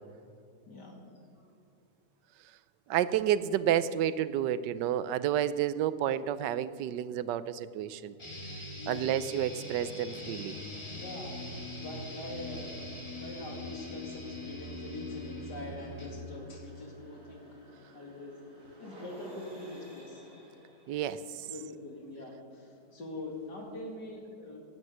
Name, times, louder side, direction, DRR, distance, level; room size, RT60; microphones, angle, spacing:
voice 1, 0.7-1.5 8.8-9.2 11.0-11.4 11.8-12.8 13.2-17.6 17.9-18.3 18.8-20.2 21.5-24.6, left 2 dB, 75° left, 1 dB, 2.9 m, -43 dB
voice 2, 2.9-8.1 8.9-10.6 20.9-21.5, right 10 dB, 85° right, 15 dB, 1.3 m, -30 dB
sound 1, 8.2-16.2, left 1 dB, 15° left, 1.8 m, -42 dB
sound 2, 9.0-23.9, equal, 35° right, 3.0 m, -56 dB
16.5 x 9.9 x 6.3 m, 2.5 s
omnidirectional pair, 1.8 m